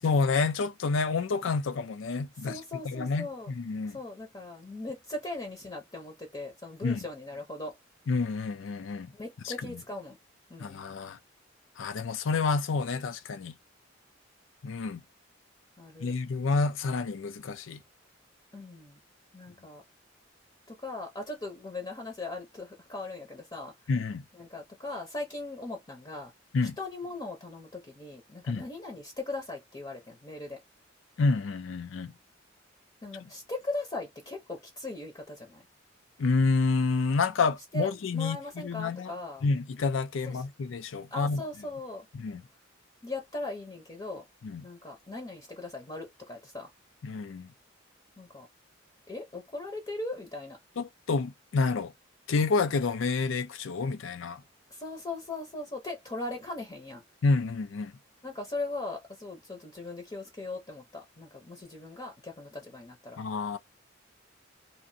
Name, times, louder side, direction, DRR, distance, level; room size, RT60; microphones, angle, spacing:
voice 1, 0.0-2.6 2.8-4.0 6.8-7.0 8.1-9.1 9.4-9.8 10.6-11.2 11.8-13.6 14.6-15.0 16.0-17.8 23.9-24.2 26.5-26.8 28.5-28.6 31.2-32.1 36.2-39.1 39.4-41.4 42.1-42.4 44.4-44.6 47.0-47.5 50.8-51.9 52.3-54.4 57.2-57.9 63.2-63.6, left 4 dB, 75° left, 0.5 m, -29 dB
voice 2, 2.4-3.5 3.9-7.8 9.1-10.2 10.5-10.8 15.8-16.1 18.5-19.0 19.3-19.8 20.7-23.7 24.3-26.3 26.8-30.6 33.0-35.6 37.7-39.4 40.3-40.4 41.1-42.1 43.0-44.2 44.6-46.7 48.2-48.5 49.1-50.6 54.7-57.0 58.2-63.2, left 2 dB, 25° left, 0.7 m, -39 dB
2.8 x 2.5 x 2.6 m
head